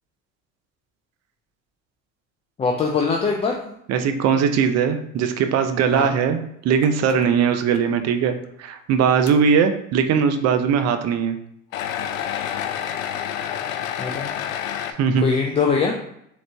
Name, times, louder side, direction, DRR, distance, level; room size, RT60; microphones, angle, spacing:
voice 1, 2.6-3.7 5.9-6.1 14.0-14.3 15.2-16.0, left 4 dB, 15° left, 1 dB, 0.3 m, -22 dB
voice 2, 3.9-11.4 15.0-15.3, right 6 dB, 40° right, 8 dB, 0.6 m, -20 dB
sound 1, 6.8-7.2 7.7-7.8 8.4-8.5 9.3-9.4 11.7-14.9, left 9 dB, 85° left, 0.5 m, -28 dB
3.7 x 3.0 x 3.4 m, 0.75 s
hypercardioid pair, 80°, 39 cm